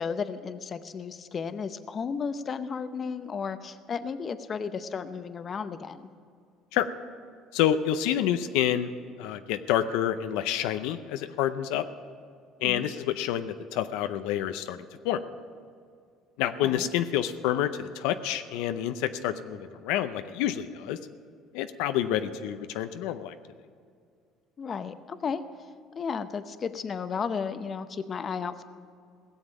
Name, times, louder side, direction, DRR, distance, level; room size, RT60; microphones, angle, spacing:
voice 1, 0.0-6.1 12.6-13.0 16.6-16.9 24.6-25.4 26.0-28.6, left 6 dB, 35° left, 11 dB, 0.7 m, -34 dB
voice 2, 7.5-8.9 9.2-11.8 12.6-15.2 16.4-21.0 21.5-23.3, left 11 dB, 85° left, 10 dB, 0.5 m, -28 dB
17.0 x 7.2 x 9.0 m, 2.2 s
cardioid pair, 110°, 0 cm